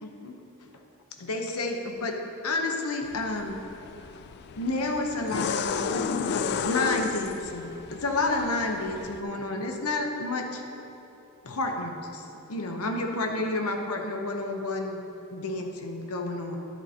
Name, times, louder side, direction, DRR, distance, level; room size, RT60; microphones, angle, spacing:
voice 1, 0.0-0.4 1.2-2.2 2.4-3.6 4.6-10.6 11.4-12.2 12.5-15.0 15.3-16.6, left 2 dB, 85° left, 3 dB, 0.9 m, -30 dB
sound 1, 3.0-9.2, left 6 dB, 50° left, 0.3 m, -33 dB
10.5 x 10.5 x 2.9 m, 3.0 s
head